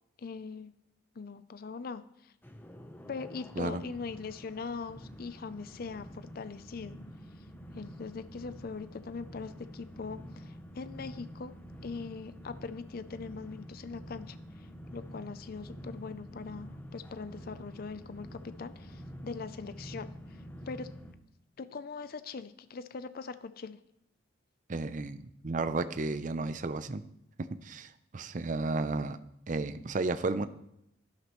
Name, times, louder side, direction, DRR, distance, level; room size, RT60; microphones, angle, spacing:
voice 1, 0.2-0.7 1.2-2.3 3.1-7.0 7.7-11.5 11.8-20.9 21.6-23.8, left 4 dB, 50° left, 13 dB, 0.4 m, -41 dB
sound 1, 2.4-21.1, equal, 10° left, 0.8 m, -47 dB
voice 2, 24.7-27.0 27.6-29.2 29.5-30.5, right 3 dB, 40° right, 12 dB, 0.5 m, -33 dB
11.5 x 11.5 x 3.1 m, 0.78 s
head